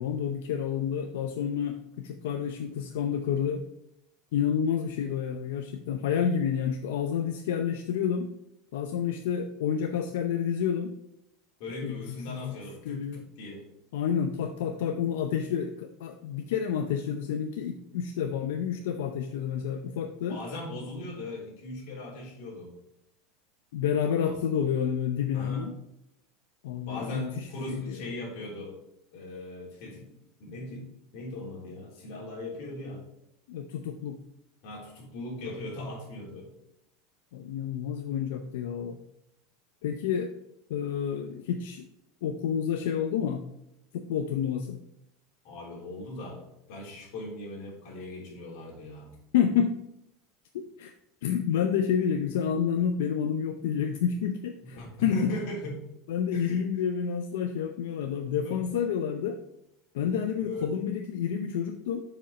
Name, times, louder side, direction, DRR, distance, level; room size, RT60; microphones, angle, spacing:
voice 1, 0.0-3.6 4.3-8.3 8.7-10.9 11.8-12.6 12.9-13.2 13.9-20.4 23.7-25.7 26.6-28.0 33.5-34.2 37.3-39.0 39.8-40.3 40.7-41.9 42.2-43.5 43.9-44.8 49.3-49.7 50.5-50.9 51.2-55.3 56.1-59.4 59.9-62.0, left 8 dB, 80° left, 6 dB, 0.6 m, -29 dB
voice 2, 11.6-13.7 20.3-22.7 24.2-24.4 25.3-25.6 26.9-28.8 29.1-33.1 34.6-36.5 45.4-49.1 54.6-55.8 56.3-56.6 58.1-58.7 60.4-60.7, left 1 dB, 50° left, -3 dB, 3.2 m, -39 dB
7.3 x 5.1 x 4.9 m, 0.82 s
supercardioid pair, 175°, 0 cm